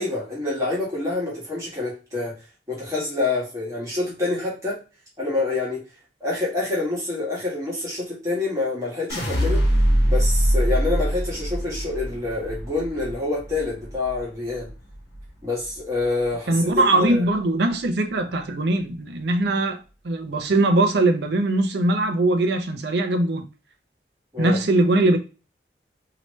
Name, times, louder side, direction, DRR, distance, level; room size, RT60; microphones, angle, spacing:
voice 1, 0.0-2.3 2.7-4.8 5.2-5.8 6.2-9.6 10.1-14.7 15.4-16.7 17.0-17.2 24.3-24.6, left 3 dB, 15° right, 1.5 m, -27 dB
sound 1, 9.1-15.3 15.6-16.2, equal, 65° left, 1.4 m, -23 dB
voice 2, 16.5-19.8 20.0-23.4 24.4-25.2, right 2 dB, 70° right, 0.6 m, -21 dB
3.0 x 2.9 x 3.1 m
head